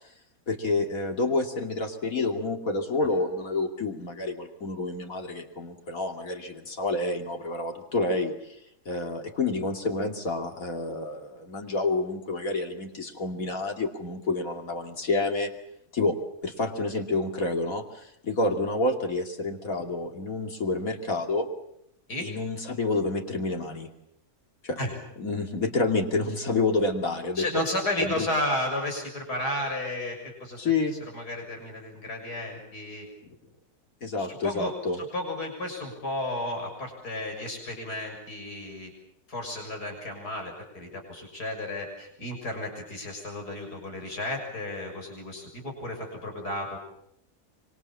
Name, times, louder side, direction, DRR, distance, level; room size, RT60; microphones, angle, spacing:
voice 1, 0.5-8.3 8.9-15.5 15.9-16.2 16.4-21.5 22.2-23.9 24.6-24.8 25.2-27.4 28.0-28.3 30.6-30.9 33.2-33.4 34.0-35.0, left 3 dB, 60° left, 4 dB, 3.1 m, -28 dB
voice 2, 27.4-30.6 31.1-33.1 34.2-38.9 39.3-46.8, left 1 dB, 90° left, 2 dB, 7.3 m, -33 dB
25.5 x 25.0 x 7.4 m, 0.74 s
omnidirectional pair, 1.6 m